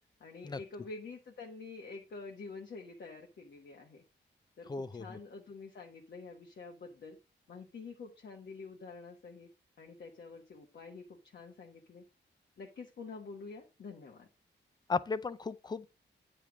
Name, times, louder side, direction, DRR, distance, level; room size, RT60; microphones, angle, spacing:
voice 1, 0.2-4.0 4.6-7.2 7.5-9.5 9.8-12.0 12.6-14.3, left 4 dB, 60° left, 1.2 m, -47 dB
voice 2, 4.7-5.2 14.9-15.9, left 4 dB, 20° left, 0.4 m, -35 dB
9.1 x 3.4 x 6.0 m
wide cardioid pair, 135°, 19 cm